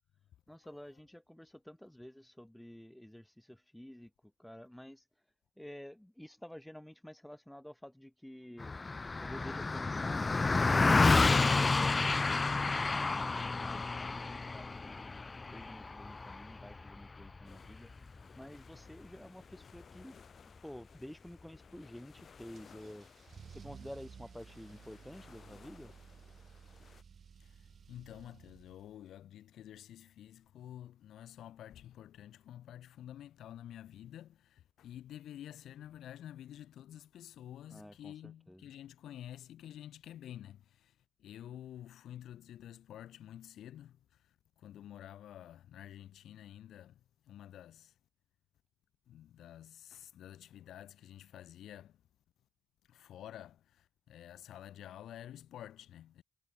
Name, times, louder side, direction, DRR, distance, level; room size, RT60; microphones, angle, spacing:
voice 1, 0.5-4.1 4.4-5.0 5.6-8.7 9.2-10.5 11.0-12.5 12.9-15.2 15.5-17.9 18.3-20.2 20.6-23.1 23.5-25.9 37.7-38.6, left 1 dB, 5° left, 1.6 m, -50 dB
Car passing by, 8.6-18.2, left 3 dB, 25° left, 0.3 m, -30 dB
sound 1, 17.4-27.0, left 6 dB, 50° left, 1.4 m, -60 dB
Car / Engine starting / Accelerating revving vroom, 22.6-29.0, right 7 dB, 50° right, 7.0 m, -55 dB
voice 2, 27.4-47.9 49.1-52.0 52.9-56.2, left 11 dB, 75° left, 4.1 m, -50 dB
cardioid pair, 90°, 0 cm